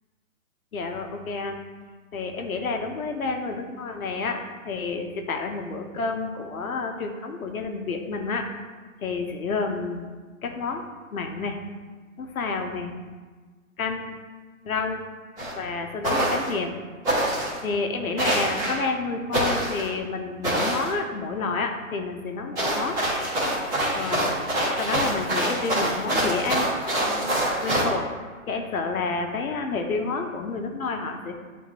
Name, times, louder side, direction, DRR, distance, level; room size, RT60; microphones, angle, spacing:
voice 1, 0.7-1.6 2.1-8.5 9.0-10.1 10.4-10.8 11.1-11.6 12.2-12.9 13.8-14.1 14.6-15.0 15.6-16.8 17.6-23.0 23.9-24.3 24.8-26.7 27.0-27.3 27.6-28.1 28.5-31.3, left 4 dB, 80° left, 4 dB, 1.0 m, -29 dB
sound 1, 15.4-15.5 16.0-16.5 17.0-17.6 18.2-18.8 19.3-19.9 20.4-20.9 22.6-27.8, right 1 dB, 10° right, 0.9 m, -25 dB
9.2 x 3.6 x 3.0 m, 1.4 s
hypercardioid pair, 165°, 41 cm